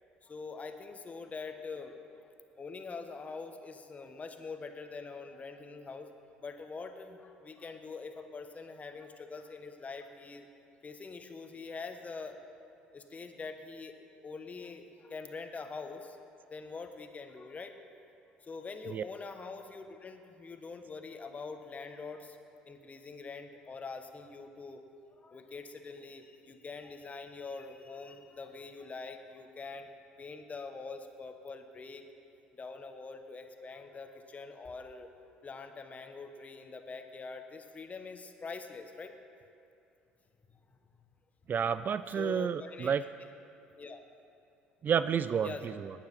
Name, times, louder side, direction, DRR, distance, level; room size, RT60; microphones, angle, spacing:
voice 1, 0.2-2.0 2.6-6.1 6.4-10.5 10.8-12.4 12.9-13.9 14.2-16.2 16.5-17.7 18.4-22.4 22.7-24.8 25.2-29.9 30.2-32.0 32.5-35.1 35.4-39.1 42.1-43.0 43.8-44.0 45.4-45.8, left 4 dB, 30° left, 6 dB, 1.2 m, -44 dB
voice 2, 41.5-43.0 44.8-45.9, right 7 dB, 40° right, 14 dB, 0.4 m, -30 dB
19.5 x 8.9 x 4.2 m, 2.7 s
hypercardioid pair, 60°, 5 cm